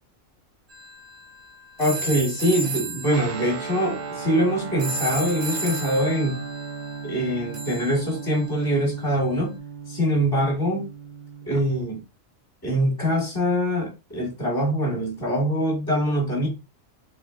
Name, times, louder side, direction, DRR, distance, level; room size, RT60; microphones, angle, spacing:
sound 1, 0.7-8.8, right 2 dB, 75° right, 1.8 m, -35 dB
voice 1, 1.8-6.4 7.0-9.5 9.9-10.9 11.4-12.0 12.6-16.5, equal, 15° left, 1.6 m, -23 dB
Guitar, 3.1-11.6, right 5 dB, 55° right, 0.5 m, -36 dB
4.1 x 3.4 x 2.4 m
omnidirectional pair, 1.4 m